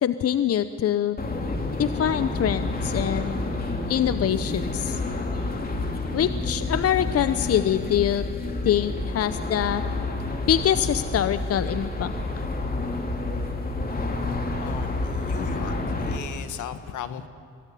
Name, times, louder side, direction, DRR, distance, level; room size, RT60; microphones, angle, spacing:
voice 1, 0.0-1.2 1.8-3.4 3.9-5.0 6.1-8.2 8.6-9.8 10.4-12.1, left 10 dB, 55° left, 12 dB, 0.8 m, -24 dB
sound 1, 1.2-16.2, left 2 dB, 30° left, 2.8 m, -29 dB
voice 2, 14.5-15.7 16.0-17.3, left 10 dB, 80° left, 10 dB, 1.5 m, -37 dB
23.0 x 17.5 x 9.9 m, 2.2 s
cardioid pair, 90°, 30 cm